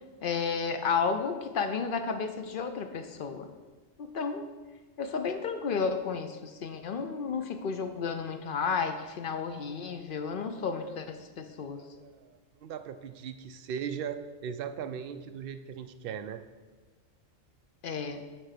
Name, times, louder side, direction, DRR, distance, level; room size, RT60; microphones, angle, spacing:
voice 1, 0.2-3.5 4.0-4.4 5.0-11.8 17.8-18.3, left 5 dB, 55° left, 7 dB, 0.7 m, -32 dB
voice 2, 11.7-16.4, right 8 dB, 60° right, 9 dB, 0.6 m, -39 dB
9.0 x 3.5 x 6.6 m, 1.3 s
omnidirectional pair, 1.3 m